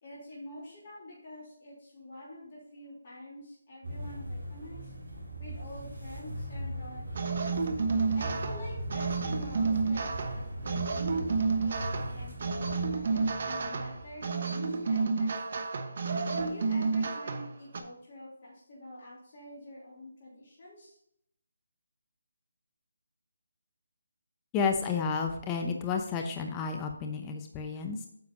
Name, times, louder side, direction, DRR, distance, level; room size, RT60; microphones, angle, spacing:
voice 1, 0.0-4.9 5.4-7.5 8.1-15.7 16.3-21.0, left 1 dB, 40° left, -6 dB, 3.1 m, -47 dB
sound 1, 3.8-14.4, right 1 dB, 70° right, 3.4 m, -40 dB
sound 2, 7.1-17.8, right 4 dB, 50° right, 1.0 m, -30 dB
voice 2, 24.5-28.1, left 5 dB, 15° left, 4 dB, 0.8 m, -31 dB
9.4 x 6.9 x 2.7 m, 0.73 s
figure-of-eight pair, 155°, 0 cm